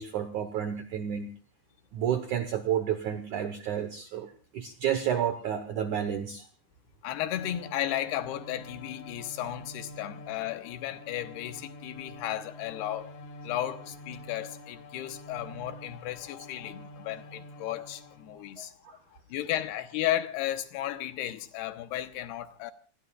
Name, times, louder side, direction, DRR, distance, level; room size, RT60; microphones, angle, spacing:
voice 1, 0.0-1.3 1.9-6.5 18.6-19.0, right 9 dB, 75° right, 1.8 m, -31 dB
voice 2, 7.0-13.1 13.4-18.7 19.3-22.7, left 12 dB, 75° left, 2.9 m, -34 dB
Bowed string instrument, 7.3-18.5, left 1 dB, 50° left, 3.9 m, -47 dB
29.0 x 21.0 x 2.4 m
omnidirectional pair, 5.0 m